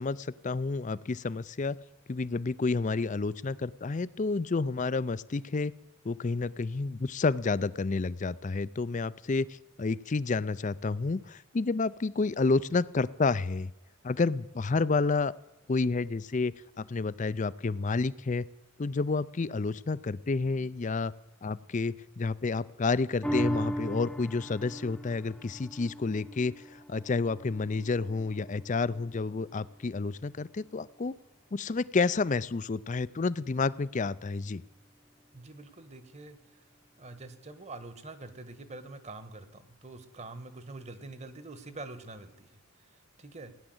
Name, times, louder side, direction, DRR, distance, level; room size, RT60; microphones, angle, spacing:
voice 1, 0.0-1.8 2.1-5.7 6.0-9.5 9.8-13.7 14.0-15.3 15.7-18.4 18.8-21.1 21.4-31.1 31.5-34.6, left 3 dB, 35° left, 19 dB, 0.4 m, -30 dB
sound 1, 23.2-29.9 30.4-30.5, equal, 5° left, 0.8 m, -37 dB
voice 2, 35.3-36.6 37.0-42.5 42.8-43.5, right 2 dB, 30° right, 12 dB, 1.3 m, -45 dB
17.5 x 10.0 x 7.9 m, 0.99 s
head